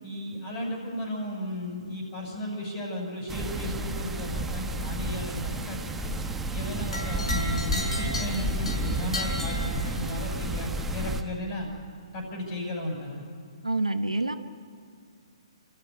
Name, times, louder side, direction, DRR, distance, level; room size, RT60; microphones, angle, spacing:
voice 1, 0.0-6.1 6.5-11.7 12.1-13.2, left 1 dB, 35° left, 0 dB, 6.1 m, -35 dB
sound 1, 3.3-11.2, right 1 dB, 10° right, 1.2 m, -31 dB
sound 2, 6.9-10.3, left 1 dB, 75° left, 5.1 m, -35 dB
voice 2, 13.6-14.4, right 2 dB, 90° right, 8 dB, 1.2 m, -27 dB
28.0 x 13.5 x 9.6 m, 2.3 s
figure-of-eight pair, 125°, 3 cm